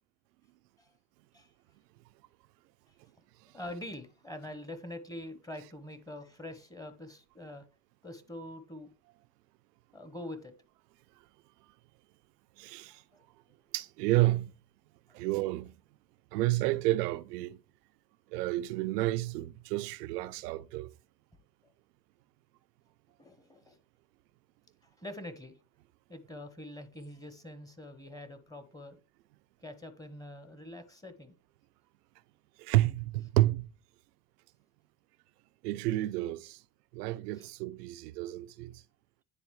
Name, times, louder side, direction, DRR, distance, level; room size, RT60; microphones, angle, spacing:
voice 1, 3.5-7.6 8.0-8.9 9.9-10.5 13.1-13.2 15.1-15.2 21.6-21.7 23.2-23.8 24.8-25.5 26.1-29.0 29.6-31.3 37.4-37.5, left 1 dB, 10° left, 1.1 m, -45 dB
voice 2, 12.6-13.0 13.7-14.5 15.1-15.8 16.3-17.6 18.3-20.9 32.6-33.7 35.6-36.6 36.9-38.8, right 17 dB, 85° right, 0.6 m, -30 dB
9.8 x 4.0 x 3.2 m
hypercardioid pair, 80°, 46 cm